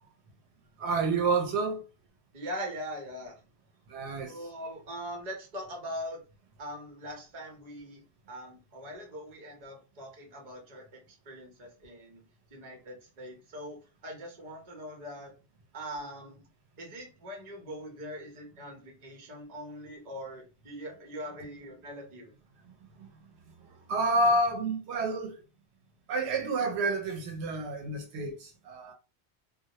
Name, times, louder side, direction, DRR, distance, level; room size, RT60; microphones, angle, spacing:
voice 1, 0.8-1.8 3.9-4.5 23.0-23.1 23.9-25.4 26.1-28.9, right 2 dB, 80° right, 0.8 m, -29 dB
voice 2, 2.3-3.4 4.2-6.2 6.6-8.0 8.3-12.2 12.5-15.3 15.7-16.4 16.8-22.3, equal, 45° right, 0.8 m, -42 dB
2.2 x 2.0 x 2.7 m
omnidirectional pair, 1.1 m